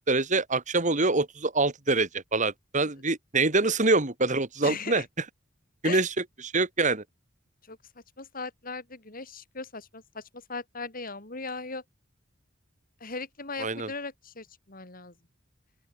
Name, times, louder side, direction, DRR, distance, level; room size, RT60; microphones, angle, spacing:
voice 1, 0.0-5.0 5.8-6.1 6.4-7.0 13.6-13.9, right 3 dB, 40° right, 2.4 m, -25 dB
voice 2, 4.6-5.0 5.8-6.0 7.7-7.8 8.2-11.8 13.0-15.1, left 4 dB, 45° left, 4.7 m, -38 dB
open air
head